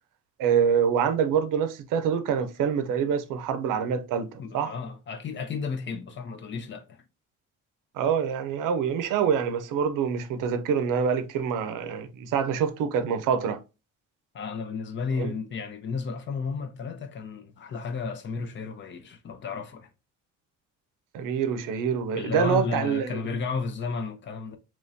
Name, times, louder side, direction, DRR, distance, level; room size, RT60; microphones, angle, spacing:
voice 1, 0.4-4.7 7.9-13.6 15.2-15.3 21.1-23.2, right 7 dB, 80° right, 0.6 m, -26 dB
voice 2, 4.4-7.0 14.3-19.9 22.2-24.6, left 5 dB, 40° left, 0.5 m, -33 dB
3.5 x 3.1 x 2.6 m
cardioid pair, 160°, 31 cm